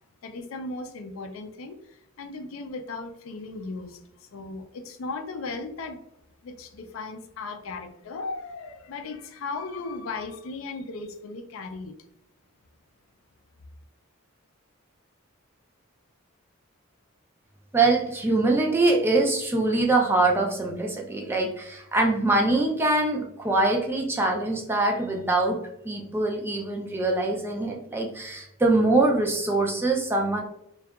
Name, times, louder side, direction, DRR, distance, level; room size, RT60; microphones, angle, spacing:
voice 1, 0.2-6.0 6.4-11.9, left 3 dB, 70° left, 7 dB, 0.4 m, -37 dB
voice 2, 17.7-25.6 25.8-30.4, right 2 dB, 10° right, 0 dB, 0.3 m, -23 dB
2.7 x 2.2 x 2.2 m, 0.77 s
head